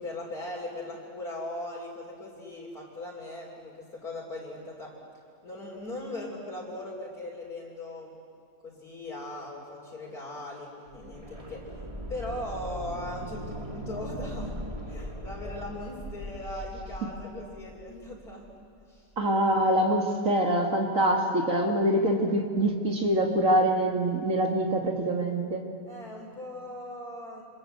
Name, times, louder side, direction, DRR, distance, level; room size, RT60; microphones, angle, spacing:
voice 1, 0.0-4.9 5.4-8.2 8.6-14.5 14.9-18.4 18.9-19.1 19.8-20.1 25.9-27.4, left 1 dB, 55° left, -5 dB, 4.4 m, -39 dB
sound 1, 10.9-18.7 19.0-19.1, equal, 20° right, 2.3 m, -40 dB
voice 2, 19.2-25.6, right 1 dB, 50° right, 2 dB, 2.6 m, -25 dB
28.5 x 26.0 x 8.0 m, 2.3 s
omnidirectional pair, 1.9 m